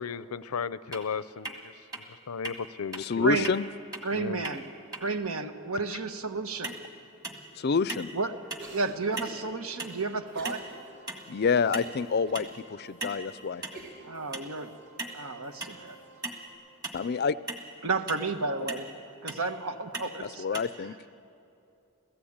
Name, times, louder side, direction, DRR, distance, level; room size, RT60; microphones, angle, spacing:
voice 1, 0.0-3.5 4.1-4.4 5.9-6.0, left 5 dB, 90° left, 16 dB, 0.6 m, -36 dB
sound 1, 0.9-1.0 1.4-1.6 1.9-2.0 2.4-2.6 2.9-3.0 3.4-3.6 3.9-4.0 4.4-4.6 4.9-5.0 6.6-6.8 7.2-7.5 7.9-8.2 8.5-8.7 9.2-9.4 9.8-10.0 10.4-10.7 11.1-11.3 11.7-12.0 12.4-12.5 13.0-13.2 13.6-13.8 14.3-14.5 15.0-15.2 15.6-15.8 16.2-16.4 16.8-17.0 17.5-17.6 18.1-18.3 18.7-18.9 19.3-19.4 19.9-20.1 20.5-20.6, right 2 dB, 20° right, 1.7 m, -37 dB
voice 2, 3.0-3.6 7.6-8.1 11.3-13.8 16.9-17.4 20.2-20.9, left 5 dB, 50° left, 17 dB, 0.5 m, -28 dB
voice 3, 4.0-4.6 5.0-6.7 8.1-8.4 8.7-10.6 14.1-14.7 15.1-16.0 17.8-18.9 19.2-20.6, right 3 dB, 75° right, 8 dB, 1.3 m, -32 dB
Cough, 8.6-9.4 10.3-10.7 11.1-11.2 11.8-12.4 13.0-13.1 13.7-14.1, right 3 dB, 55° right, 5.5 m, -46 dB
sound 2, 9.7-16.5, right 2 dB, 35° right, 4.9 m, -55 dB
29.0 x 16.0 x 8.8 m, 2.8 s
head